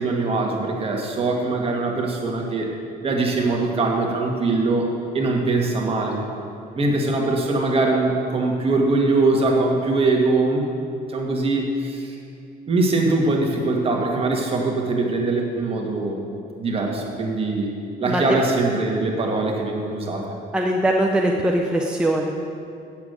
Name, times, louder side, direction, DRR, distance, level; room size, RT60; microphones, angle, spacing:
voice 1, 0.0-2.7 3.0-4.9 5.1-6.2 6.7-10.6 11.1-12.2 12.7-16.2 16.6-17.7 18.0-20.3, right 3 dB, 35° right, 0 dB, 1.9 m, -22 dB
voice 2, 18.0-18.4 20.5-22.3, right 1 dB, 5° right, 0 dB, 0.8 m, -21 dB
8.5 x 7.3 x 8.1 m, 2.5 s
cardioid pair, 110°, 17 cm